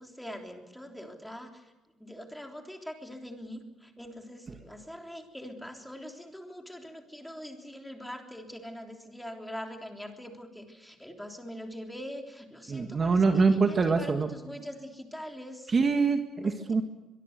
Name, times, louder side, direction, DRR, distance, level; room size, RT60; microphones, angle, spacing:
voice 1, 0.0-15.7 16.4-16.5, equal, 5° left, 3 dB, 3.4 m, -43 dB
voice 2, 12.7-14.3 15.7-16.8, right 4 dB, 30° right, 5 dB, 1.8 m, -24 dB
24.0 x 22.5 x 6.7 m, 1.1 s
cardioid pair, 140°, 0 cm